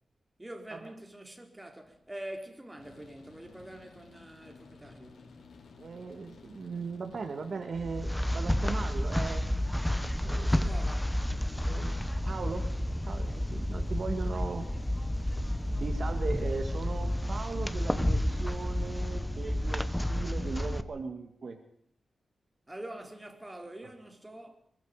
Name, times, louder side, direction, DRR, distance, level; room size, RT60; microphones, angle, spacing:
voice 1, 0.4-5.2 10.5-11.1 22.7-24.6, right 1 dB, 15° right, 3.9 m, -45 dB
sound 1, 2.8-18.9, left 4 dB, 85° left, 5.9 m, -54 dB
voice 2, 5.8-9.4 10.2-10.7 11.7-12.6 13.1-14.7 15.8-21.6 23.8-23.9, right 4 dB, 55° right, 2.3 m, -38 dB
sound 2, 7.7-20.8, left 1 dB, 5° left, 1.2 m, -30 dB
25.5 x 22.5 x 5.2 m
wide cardioid pair, 95°, 0 cm